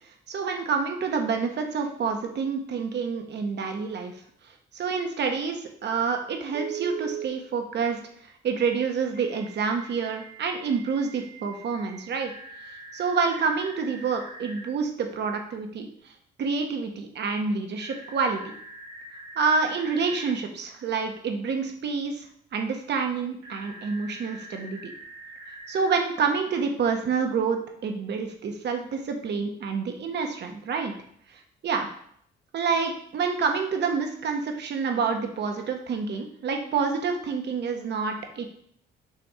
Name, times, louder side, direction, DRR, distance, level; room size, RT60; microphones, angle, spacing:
voice 1, 0.3-4.1 4.7-12.3 12.9-16.1 16.4-18.5 19.4-22.2 22.5-24.9 25.7-30.9 31.3-31.9 32.5-38.5, right 5 dB, 60° right, 4 dB, 1.1 m, -28 dB
Telephone, 6.5-7.3 9.1-14.7 17.8-20.3 23.4-26.0, right 5 dB, 80° right, 2.6 m, -42 dB
6.8 x 3.4 x 4.9 m, 0.65 s
cardioid pair, 90°, 20 cm